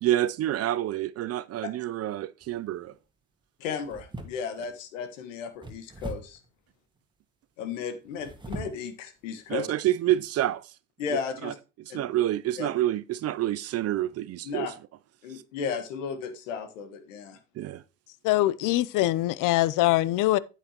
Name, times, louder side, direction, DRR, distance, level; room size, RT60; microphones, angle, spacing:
voice 1, 0.0-2.9 9.5-10.7 11.4-11.5 11.9-14.7 17.6-17.8, right 13 dB, 40° right, 0.5 m, -28 dB
sound 1, 2.4-2.8 3.8-4.7 5.6-6.5 8.1-8.9 9.4-9.6 10.1-10.2, right 2 dB, 10° right, 1.7 m, -41 dB
voice 2, 3.6-6.4 7.6-9.7 11.0-11.6 11.9-12.0 12.6-12.7 14.4-14.7 15.2-17.4, left 6 dB, 90° left, 1.6 m, -34 dB
voice 3, 18.2-20.4, left 16 dB, 55° left, 0.6 m, -23 dB
8.7 x 8.4 x 3.0 m
supercardioid pair, 85°, 37 cm